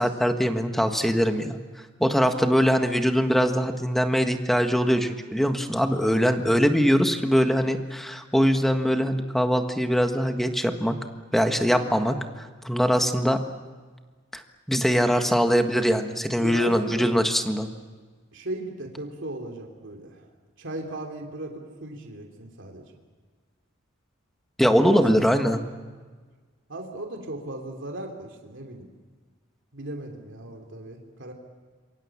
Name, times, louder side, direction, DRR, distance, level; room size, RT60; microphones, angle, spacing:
voice 1, 0.0-1.6 2.0-11.0 11.3-13.4 14.3-14.4 14.7-17.7 24.6-25.6, equal, ahead, 6 dB, 1.5 m, -22 dB
voice 2, 16.4-17.1 18.3-20.2 20.6-22.8 24.9-25.3 26.7-28.9 29.7-31.3, right 1 dB, 65° right, 2 dB, 3.1 m, -37 dB
27.5 x 23.5 x 7.3 m, 1.5 s
head